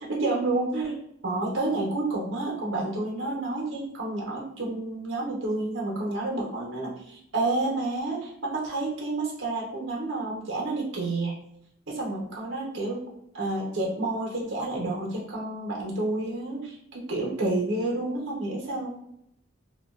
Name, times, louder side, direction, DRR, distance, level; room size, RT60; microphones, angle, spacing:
voice 1, 0.0-1.0 1.2-11.4 11.9-13.0 13.3-18.9, right 2 dB, 70° right, -2 dB, 0.8 m, -29 dB
2.4 x 2.2 x 2.3 m, 0.74 s
head